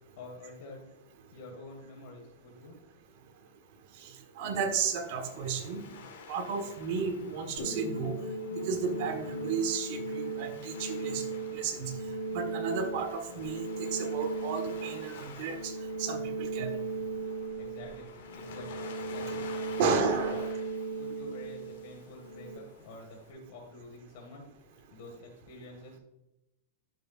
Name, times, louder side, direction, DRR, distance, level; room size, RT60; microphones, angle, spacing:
voice 1, 0.2-0.9 1.3-2.8 17.6-18.7 19.1-19.5 19.7-20.0 20.3-20.4 20.9-24.4 24.9-26.0, left 2 dB, 50° left, 0 dB, 1.8 m, -47 dB
voice 2, 4.4-5.8 6.3-8.2 8.5-11.2 11.5-11.9 12.3-15.6 16.0-16.7 19.8-20.5, right 5 dB, 50° right, 4 dB, 1.3 m, -33 dB
Waves surf, 4.5-23.3, left 6 dB, 65° left, 2.0 m, -50 dB
sound 1, 7.6-22.6, right 3 dB, 85° left, 3.1 m, -37 dB
12.0 x 5.8 x 2.5 m, 0.91 s
supercardioid pair, 150°, 0 cm